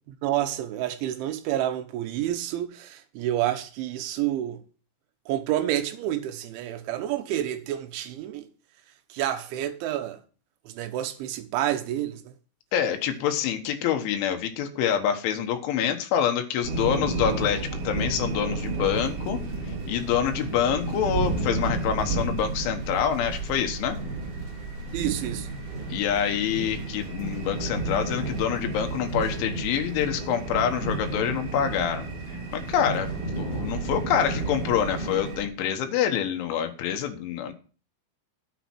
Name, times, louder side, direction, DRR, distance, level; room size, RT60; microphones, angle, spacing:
voice 1, 0.2-4.6 5.3-8.5 9.1-10.2 10.7-12.2 24.9-25.5, right 12 dB, 85° right, 3.4 m, -29 dB
voice 2, 12.7-24.0 25.9-32.1 32.5-33.1 33.4-37.5, left 9 dB, 85° left, 3.6 m, -26 dB
sound 1, 16.6-35.5, right 3 dB, 50° right, 4.4 m, -31 dB
10.0 x 8.3 x 4.5 m
omnidirectional pair, 5.3 m